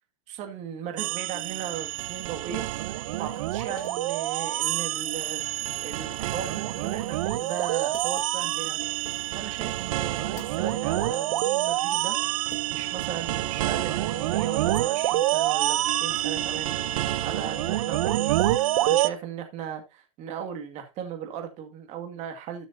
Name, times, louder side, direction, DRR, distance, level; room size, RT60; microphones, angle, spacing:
voice 1, 0.3-2.7 3.2-5.4 5.8-9.1 9.4-22.7, right 8 dB, 40° right, 2.1 m, -37 dB
sound 1, 1.0-19.1, right 14 dB, 70° right, 0.8 m, -27 dB
sound 2, 3.4-13.1 13.4-14.3, left 7 dB, 45° left, 3.2 m, -53 dB
13.0 x 6.9 x 2.7 m
supercardioid pair, 140°, 18 cm